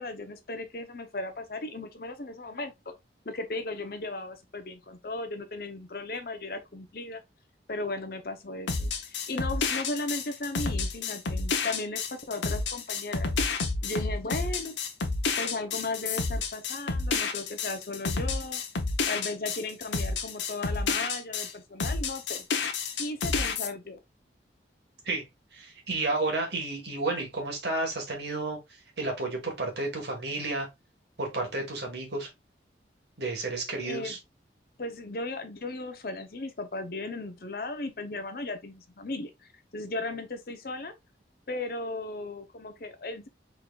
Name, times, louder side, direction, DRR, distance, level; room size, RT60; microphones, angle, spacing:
voice 1, 0.0-2.9 3.2-7.2 7.7-13.3 13.8-14.8 15.4-18.6 19.1-22.4 23.0-24.0 33.8-34.2 34.8-39.3 39.7-40.9 41.5-43.3, left 2 dB, 55° left, 0.7 m, -36 dB
sound 1, 8.7-21.5 21.8-23.7, left 4 dB, 80° left, 0.8 m, -30 dB
voice 2, 25.5-28.6 29.0-30.7 31.2-32.3 33.2-34.2, right 2 dB, 65° right, 1.6 m, -31 dB
4.6 x 3.8 x 2.3 m
head